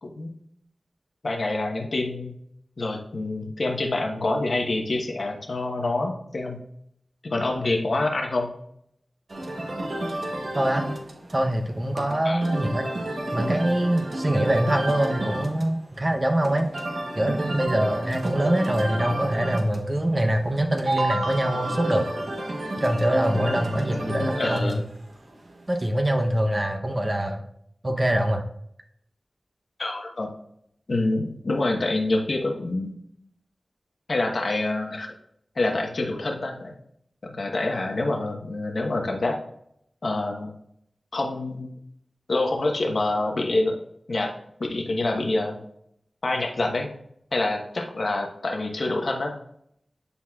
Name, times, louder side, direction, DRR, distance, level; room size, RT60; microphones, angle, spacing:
voice 1, 1.2-2.3 2.8-6.6 7.2-8.5 12.2-12.4 23.3-23.5 23.9-24.8 29.8-30.3 30.9-32.9 34.1-35.1 35.6-36.7 37.3-39.4 40.0-40.5 41.1-41.7 42.3-43.8 44.1-44.3 44.6-45.6 46.2-46.9 47.3-49.4, left 2 dB, 70° left, 1 dB, 1.2 m, -26 dB
sound 1, 9.3-26.0, right 1 dB, 65° right, 1.0 m, -31 dB
voice 2, 10.6-10.9 11.3-12.9 13.3-16.7 17.2-22.1 22.8-24.8 25.7-27.4 27.8-28.4, right 1 dB, 30° right, 4 dB, 0.8 m, -24 dB
9.9 x 4.2 x 2.4 m, 0.72 s
wide cardioid pair, 50°, 0 cm